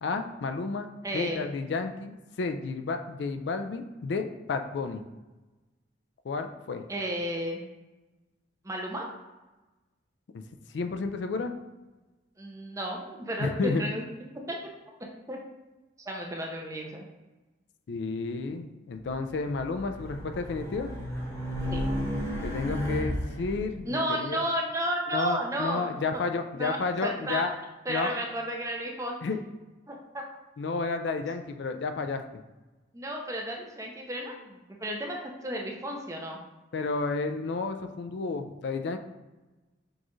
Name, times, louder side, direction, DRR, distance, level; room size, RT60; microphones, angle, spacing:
voice 1, 0.0-0.9 1.1-5.0 6.2-6.8 10.3-10.4 10.7-11.5 13.4-13.8 17.9-20.9 22.4-24.4 25.1-27.5 27.9-28.1 29.2-29.4 30.6-32.2 36.7-39.0, left 4 dB, 65° left, 7 dB, 0.3 m, -31 dB
voice 2, 1.0-1.5 6.9-7.6 8.6-9.1 12.4-14.0 14.5-14.6 15.0-15.4 16.0-17.0 21.7-21.8 23.9-26.2 26.5-27.6 27.9-29.1 29.9-30.2 32.9-36.4, right 1 dB, 15° right, 0 dB, 0.6 m, -33 dB
Race car auto racing, 19.2-23.6, equal, 15° left, 1.0 m, -33 dB
6.3 x 2.4 x 3.0 m, 1.1 s
head